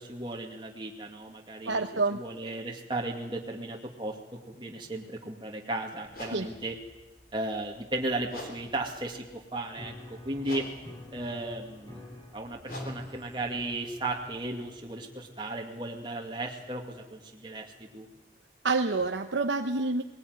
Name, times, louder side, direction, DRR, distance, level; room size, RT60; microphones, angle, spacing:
voice 1, 0.0-1.8 2.1-4.2 4.5-6.8 7.3-10.6 11.1-12.0 12.3-18.1, right 2 dB, 25° right, 0 dB, 2.3 m, -35 dB
voice 2, 1.7-2.2 6.3-6.5 18.6-20.0, right 3 dB, 90° right, 5 dB, 1.0 m, -27 dB
sound 1, 6.1-14.8, left 1 dB, 50° left, 3.6 m, -49 dB
Piano, 9.7-18.2, left 1 dB, 20° left, 6.0 m, -48 dB
20.0 x 18.0 x 9.5 m, 1.1 s
head